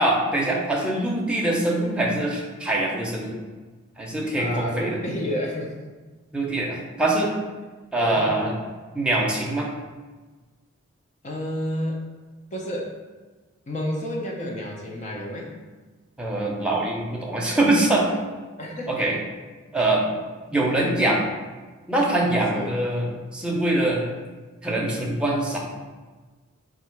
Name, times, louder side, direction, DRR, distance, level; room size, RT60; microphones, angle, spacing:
voice 1, 0.0-3.3 4.0-5.0 6.3-7.3 7.9-8.5 8.9-9.7 16.2-18.1 18.9-19.2 19.7-20.0 20.5-21.2 21.9-24.1 24.6-25.6, right 1 dB, 5° right, -3 dB, 0.6 m, -23 dB
voice 2, 4.4-5.7 8.0-8.3 11.2-12.2 12.5-12.9 13.7-15.5 18.6-19.1 19.7-19.8 22.5-22.7, equal, 35° left, -1 dB, 0.5 m, -30 dB
3.6 x 2.8 x 4.5 m, 1.3 s
head